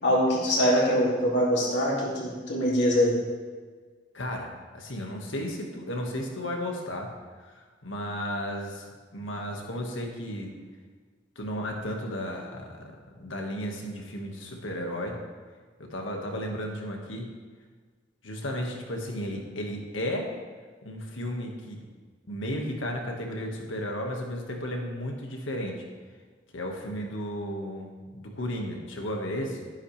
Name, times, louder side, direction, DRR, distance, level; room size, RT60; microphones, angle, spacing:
voice 1, 0.0-3.2, equal, 65° left, -4 dB, 2.7 m, -23 dB
voice 2, 4.1-4.5 4.7-7.1 7.4-8.8 9.1-10.5 11.4-15.1 15.8-17.3 18.2-20.3 20.8-21.8 22.3-25.8 26.5-29.7, equal, 85° left, 1 dB, 1.7 m, -34 dB
12.0 x 11.0 x 3.4 m, 1.5 s
head